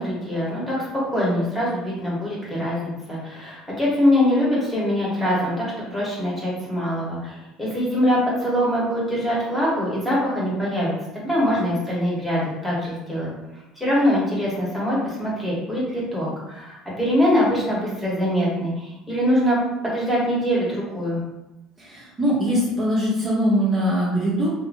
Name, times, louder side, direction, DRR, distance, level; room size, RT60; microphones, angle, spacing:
voice 1, 0.0-13.3 13.8-21.2, equal, 5° left, -7 dB, 1.0 m, -23 dB
voice 2, 21.8-24.5, equal, 25° right, -7 dB, 0.6 m, -22 dB
2.6 x 2.5 x 2.6 m, 0.94 s
cardioid pair, 140°, 0 cm